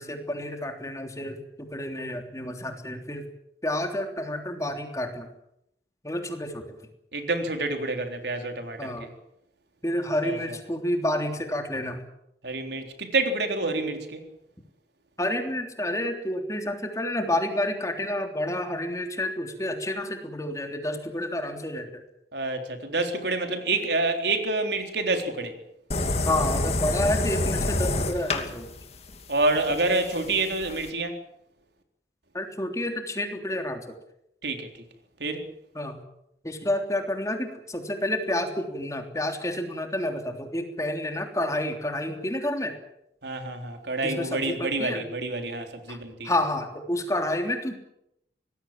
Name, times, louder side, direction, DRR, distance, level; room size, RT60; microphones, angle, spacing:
voice 1, 0.0-3.3 3.6-5.3 6.0-6.8 8.8-9.1 9.8-12.0 15.2-22.0 26.3-28.7 32.3-33.8 35.8-36.0 36.4-42.7 44.0-45.0 45.9-46.0 46.2-47.8, left 1 dB, 20° left, 3.4 m, -29 dB
voice 2, 7.1-9.1 10.2-10.6 12.4-14.3 22.3-25.6 29.3-31.2 34.4-34.7 35.2-35.4 43.2-46.3, right 2 dB, 70° right, 3.8 m, -28 dB
sound 1, 25.9-30.9, left 2 dB, 35° left, 2.8 m, -28 dB
25.0 x 20.0 x 7.6 m
head